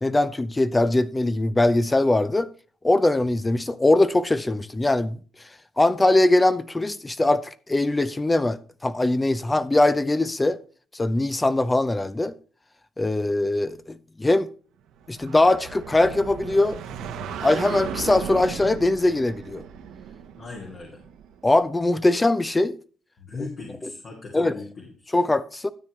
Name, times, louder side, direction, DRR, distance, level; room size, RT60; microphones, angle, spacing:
voice 1, 0.0-2.5 2.8-5.2 5.8-10.6 10.9-12.3 13.0-14.5 15.1-16.8 17.4-19.6 21.4-22.8 24.3-24.5 25.1-25.7, left 2 dB, 15° left, 0.5 m, -21 dB
sound 1, 15.0-21.6, right 7 dB, 90° right, 1.1 m, -36 dB
voice 2, 20.4-21.0 23.2-25.1, left 3 dB, 55° left, 2.5 m, -38 dB
12.5 x 8.2 x 3.2 m
cardioid pair, 90°, 0 cm